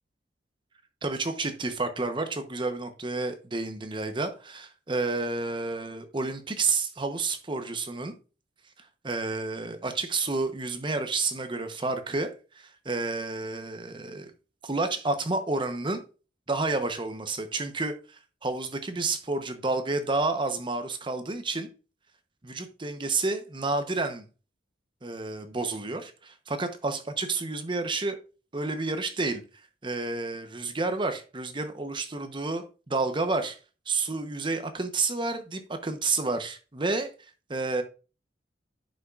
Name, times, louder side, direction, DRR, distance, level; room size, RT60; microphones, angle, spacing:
voice 1, 1.0-8.1 9.0-12.3 12.5-14.3 14.6-16.0 16.5-21.7 22.4-24.2 25.0-28.2 28.5-29.4 29.8-33.6 33.9-37.1 37.5-37.8, right 3 dB, 25° right, 0.8 m, -30 dB
10.0 x 5.7 x 2.4 m
head